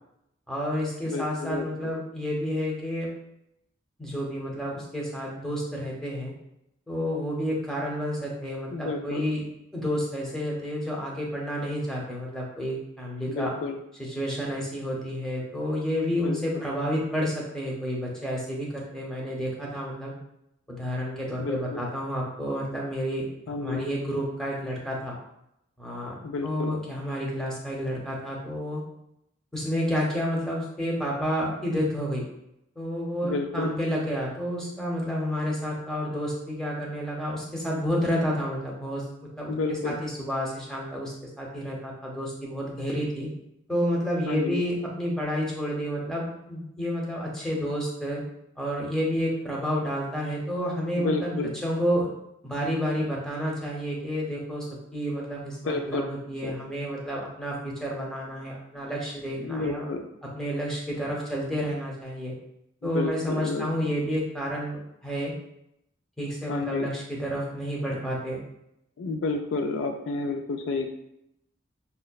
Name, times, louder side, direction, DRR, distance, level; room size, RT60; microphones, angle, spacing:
voice 1, 0.5-3.1 4.0-6.3 6.9-9.4 9.7-13.5 14.0-20.1 20.7-23.3 23.6-25.1 25.8-28.8 29.5-32.2 32.8-39.0 39.4-43.3 43.7-48.2 48.6-51.4 51.6-52.1 52.4-59.8 60.3-62.3 62.8-65.3 66.2-68.4, equal, 5° left, -3 dB, 0.7 m, -30 dB
voice 2, 1.1-1.9 8.7-9.3 13.3-13.8 16.1-16.7 21.4-21.8 23.5-23.9 26.2-26.7 33.2-33.7 39.5-40.0 44.3-44.6 50.9-51.6 55.6-56.0 56.4-56.5 59.4-60.1 62.9-63.9 66.5-66.9 69.0-70.9, left 3 dB, 70° left, 5 dB, 0.3 m, -31 dB
5.4 x 2.1 x 2.3 m, 0.81 s
head